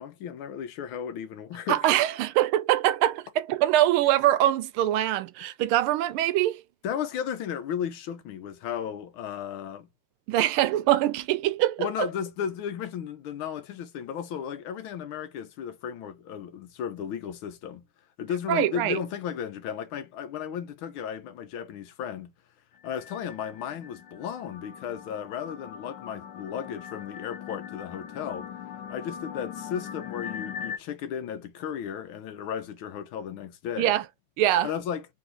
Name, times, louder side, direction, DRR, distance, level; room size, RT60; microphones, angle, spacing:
voice 1, 0.0-1.8 6.8-9.9 11.8-17.9 18.2-22.3 22.8-28.5 28.9-33.9 34.6-35.1, left 8 dB, 80° left, 1.6 m, -34 dB
voice 2, 1.7-6.6 10.3-12.1 18.5-19.0 33.8-34.0 34.4-34.7, right 13 dB, 85° right, 1.5 m, -23 dB
sound 1, 22.8-30.8, left 8 dB, 60° left, 1.6 m, -40 dB
3.9 x 3.3 x 3.8 m
omnidirectional pair, 2.3 m